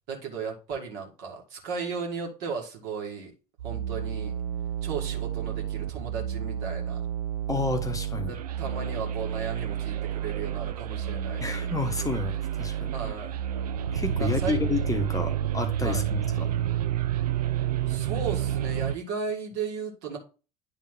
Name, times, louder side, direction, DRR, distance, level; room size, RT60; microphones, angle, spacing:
voice 1, 0.1-3.3 3.6-4.3 4.8-7.0 8.3-11.7 12.9-13.4 14.2-14.6 15.8-16.1 17.9-20.2, right 5 dB, 60° right, 2.1 m, -35 dB
sound 1, 3.6-19.0, right 10 dB, 75° right, 0.4 m, -30 dB
voice 2, 7.5-8.3 11.4-12.9 13.9-16.5, left 3 dB, 15° left, 1.0 m, -30 dB
10.0 x 3.8 x 3.7 m
figure-of-eight pair, 60°, 20 cm